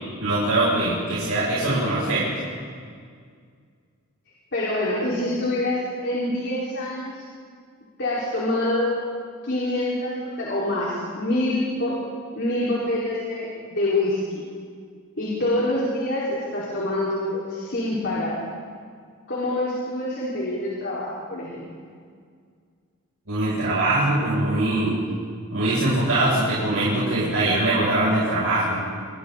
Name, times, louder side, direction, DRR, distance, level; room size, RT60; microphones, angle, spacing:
voice 1, 0.2-2.3 23.3-25.0 25.5-28.8, right 2 dB, 70° right, -8 dB, 7.4 m, -22 dB
voice 2, 4.5-7.2 8.0-9.0 9.4-12.0 12.3-14.4 15.2-18.4 19.3-21.7, left 1 dB, 50° left, -7 dB, 5.0 m, -26 dB
30.0 x 27.0 x 4.2 m, 2.1 s
head